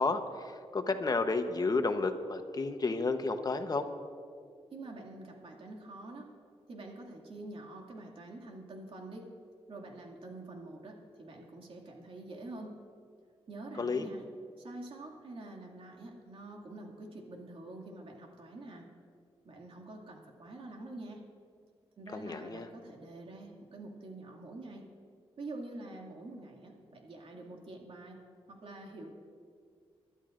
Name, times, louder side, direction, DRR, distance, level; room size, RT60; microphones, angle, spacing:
voice 1, 0.0-3.9 13.8-14.1 22.1-22.7, left 3 dB, 40° left, 7 dB, 1.0 m, -31 dB
voice 2, 4.7-6.3 6.7-9.3 9.7-12.7 13.5-14.2 14.6-18.9 19.4-21.2 22.0-24.9 25.4-28.2 28.5-29.1, right 2 dB, 60° right, 0 dB, 2.3 m, -46 dB
25.0 x 12.5 x 2.6 m, 2.2 s
cardioid pair, 75°, 10 cm